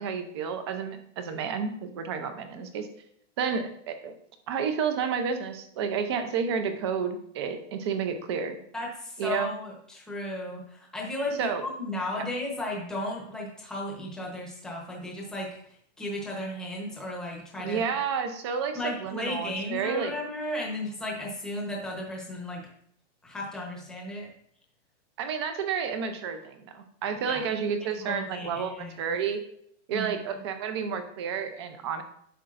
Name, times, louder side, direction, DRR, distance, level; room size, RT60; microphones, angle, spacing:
voice 1, 0.0-2.9 3.4-4.1 4.5-8.6 9.2-9.5 11.4-11.6 12.2-12.3 17.6-20.1 25.2-29.4 29.9-32.0, right 6 dB, 25° right, 8 dB, 0.5 m, -30 dB
voice 2, 8.7-15.5 16.0-17.9 18.7-22.7 23.2-24.3 27.3-27.6 28.0-29.2 29.9-30.1, left 1 dB, ahead, -2 dB, 0.9 m, -35 dB
10.0 x 6.6 x 2.5 m, 0.68 s
hypercardioid pair, 170°, 36 cm